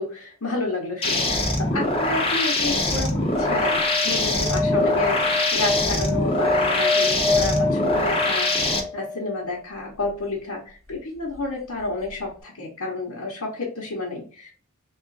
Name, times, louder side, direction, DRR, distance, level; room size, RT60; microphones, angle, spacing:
voice 1, 0.0-14.5, left 2 dB, 65° left, -4 dB, 1.0 m, -30 dB
sound 1, 1.0-8.8, left 2 dB, 25° left, 0.8 m, -23 dB
sound 2, 3.3-9.5 11.8-11.9 12.1-12.2, left 3 dB, ahead, 0.6 m, -27 dB
3.6 x 2.4 x 3.8 m, 0.41 s
head